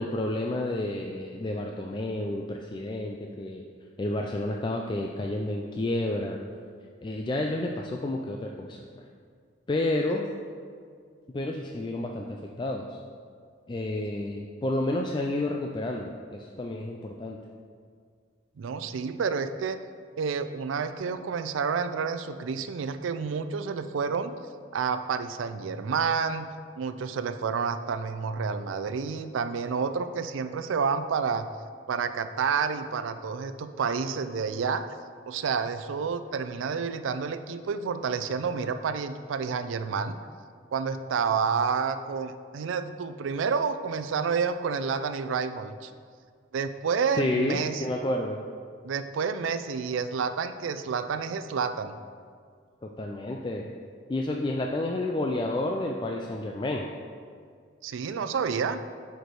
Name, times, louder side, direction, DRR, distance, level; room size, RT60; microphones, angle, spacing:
voice 1, 0.0-3.6 4.0-6.4 7.0-8.8 9.7-10.2 11.3-13.0 13.7-17.4 47.1-48.4 52.8-53.7 54.1-56.9, left 1 dB, 25° left, 1 dB, 0.3 m, -30 dB
voice 2, 18.6-19.8 20.2-24.3 24.7-26.5 26.8-31.5 31.9-35.0 35.3-40.2 40.7-45.9 46.5-47.8 48.8-52.0 57.8-58.8, right 5 dB, 90° right, 11 dB, 0.4 m, -29 dB
6.7 x 4.6 x 4.7 m, 2.1 s
head